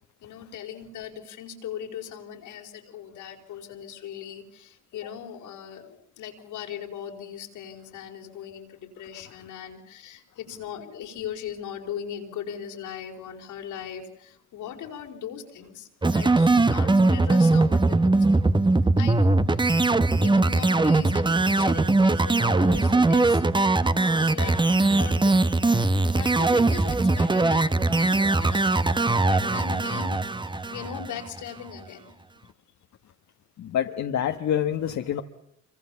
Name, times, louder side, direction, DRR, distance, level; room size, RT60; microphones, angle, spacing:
voice 1, 0.2-18.5 19.0-19.6 20.1-23.4 24.0-32.2, left 9 dB, 90° left, 2 dB, 4.7 m, -39 dB
sound 1, 16.0-31.4, right 2 dB, 15° right, 1.1 m, -21 dB
voice 2, 33.6-35.2, left 9 dB, 65° left, 6 dB, 1.5 m, -26 dB
26.0 x 24.5 x 7.1 m, 0.76 s
cardioid pair, 90°, 30 cm